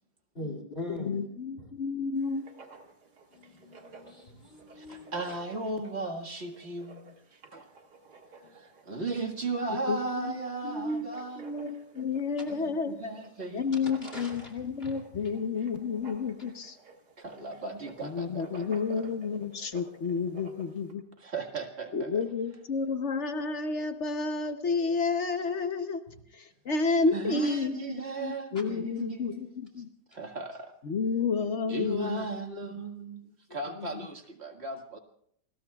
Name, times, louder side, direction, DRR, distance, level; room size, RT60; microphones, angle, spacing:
voice 1, 0.3-1.3 3.3-5.3 8.4-8.6 13.8-15.4 30.1-30.2, left 2 dB, 35° left, 2 dB, 2.7 m, -42 dB
voice 2, 1.1-2.5 9.7-10.0 10.6-11.1 11.4-13.0 13.5-16.8 18.0-21.0 21.9-26.0 26.3-29.9 30.8-32.3 33.8-33.9, left 4 dB, 50° left, 8 dB, 1.0 m, -30 dB
Writing, 2.2-20.9, right 3 dB, 65° right, 2.4 m, -54 dB
voice 3, 4.7-7.1 7.5-7.7 8.5-11.4 12.5-13.7 17.2-19.0 21.2-22.2 27.1-29.7 30.1-30.7 31.7-35.0, right 3 dB, 40° right, 3 dB, 2.0 m, -36 dB
29.0 x 21.0 x 2.4 m, 0.68 s
omnidirectional pair, 1.9 m